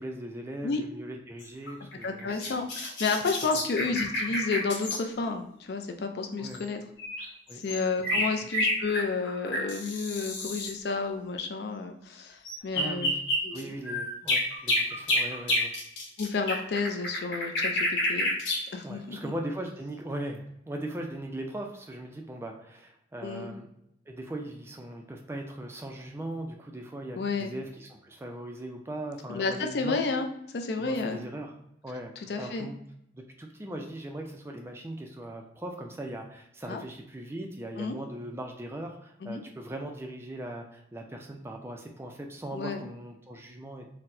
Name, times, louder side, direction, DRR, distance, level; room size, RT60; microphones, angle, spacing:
voice 1, 0.0-2.4 6.4-6.6 7.5-7.6 8.1-8.3 12.7-13.2 13.5-15.7 18.8-23.7 24.1-30.0 30.8-31.5 31.8-32.8 33.1-43.9, right 1 dB, 15° right, 2 dB, 0.3 m, -39 dB
sound 1, 1.4-5.0 6.5-6.6 7.0-10.7 12.5-18.6, left 1 dB, 85° left, 1.1 m, -29 dB
voice 2, 2.0-6.8 7.5-13.1 13.4-13.7 16.2-18.3 18.7-19.3 23.2-23.5 27.2-27.5 29.3-30.3 30.5-31.2 32.3-32.7 36.7-36.8 37.8-38.0 39.2-39.4 42.5-42.8, left 4 dB, 60° left, 5 dB, 0.4 m, -31 dB
4.2 x 2.0 x 2.5 m, 0.79 s
head